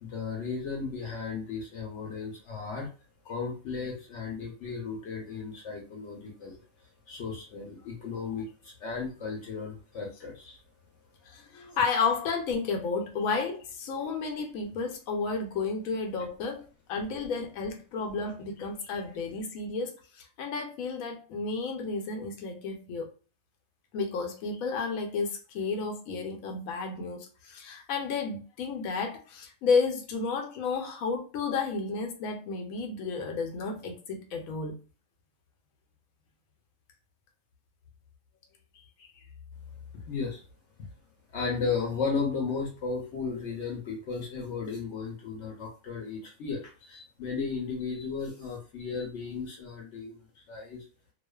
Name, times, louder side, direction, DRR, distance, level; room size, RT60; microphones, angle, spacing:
voice 1, 0.0-2.9 3.2-6.6 7.1-10.6 40.1-40.4 41.3-50.8, left 5 dB, 65° left, 0.9 m, -35 dB
voice 2, 11.3-16.6 16.9-23.1 23.9-34.7, left 4 dB, 90° left, 1.0 m, -32 dB
2.5 x 2.3 x 2.2 m
omnidirectional pair, 1.4 m